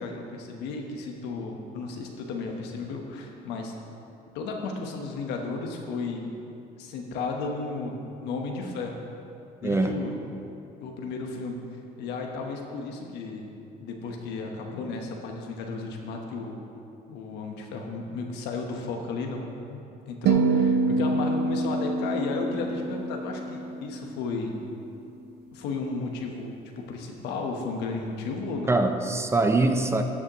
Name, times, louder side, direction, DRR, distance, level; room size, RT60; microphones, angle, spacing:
voice 1, 0.0-3.7 4.3-6.3 6.8-9.0 9.6-10.2 10.8-11.6 12.0-13.5 13.8-16.6 17.1-24.6 25.5-26.6 26.9-28.8, left 3 dB, 90° left, 2 dB, 1.2 m, -34 dB
voice 2, 9.6-10.1 28.7-30.0, right 2 dB, 15° right, 6 dB, 0.6 m, -23 dB
sound 1, 20.3-24.6, right 3 dB, 75° right, 0.7 m, -26 dB
13.5 x 7.3 x 3.0 m, 2.7 s
cardioid pair, 110°, 17 cm